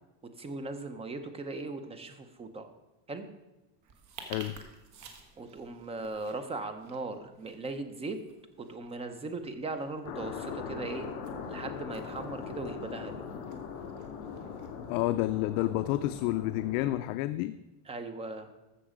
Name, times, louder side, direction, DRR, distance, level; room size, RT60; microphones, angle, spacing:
voice 1, 0.4-2.7 3.1-3.3 5.4-8.2 8.6-11.1 11.5-13.1 17.9-18.5, right 3 dB, 15° right, 9 dB, 0.6 m, -38 dB
sound 1, 3.8-16.0, right 5 dB, 40° right, 1.6 m, -54 dB
voice 2, 4.2-4.6 14.9-17.5, left 15 dB, 65° left, 12 dB, 0.5 m, -30 dB
sound 2, 10.0-17.0, left 6 dB, 80° left, 1.9 m, -40 dB
14.0 x 6.8 x 5.0 m, 1.0 s
cardioid pair, 165°, 45 cm